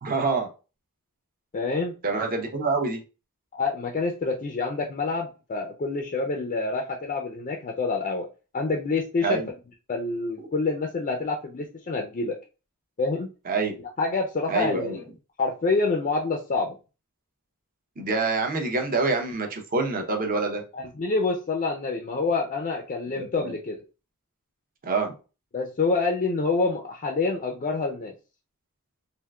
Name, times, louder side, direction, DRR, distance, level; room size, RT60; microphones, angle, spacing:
voice 1, 0.0-0.5 2.0-3.0 9.2-9.5 13.5-13.7 14.5-15.0 18.0-20.6 23.2-23.6 24.8-25.1, right 3 dB, 40° right, 3 dB, 0.6 m, -26 dB
voice 2, 1.5-2.0 3.5-8.3 8.5-9.4 9.9-12.4 13.0-13.3 14.0-15.0 15.4-16.7 20.7-23.7 25.5-28.1, left 3 dB, 35° left, 2 dB, 0.4 m, -27 dB
3.6 x 2.4 x 2.2 m, 0.32 s
head